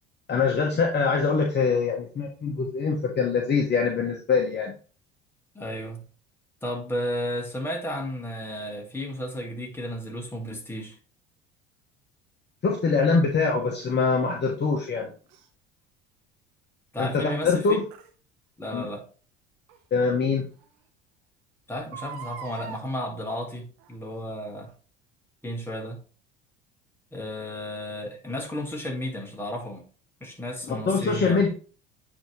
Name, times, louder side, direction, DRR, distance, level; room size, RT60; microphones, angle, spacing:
voice 1, 0.3-4.7 12.6-15.1 17.0-17.8 18.7-18.9 19.9-20.5 30.7-31.5, left 4 dB, 35° left, 1.3 m, -24 dB
voice 2, 5.5-6.0 6.6-11.0 16.9-17.9 18.6-19.1 21.7-24.7 25.4-26.0 27.1-29.8 30.2-31.4, equal, 5° left, 2.4 m, -33 dB
Crying sobbing, 15.3-15.4 17.9-18.1 19.7-19.8 20.3-20.4 20.6-20.7 21.8-22.8 23.8-24.1 24.7-24.8, right 7 dB, 65° right, 1.3 m, -40 dB
8.9 x 3.6 x 3.2 m
hypercardioid pair, 70°, 31 cm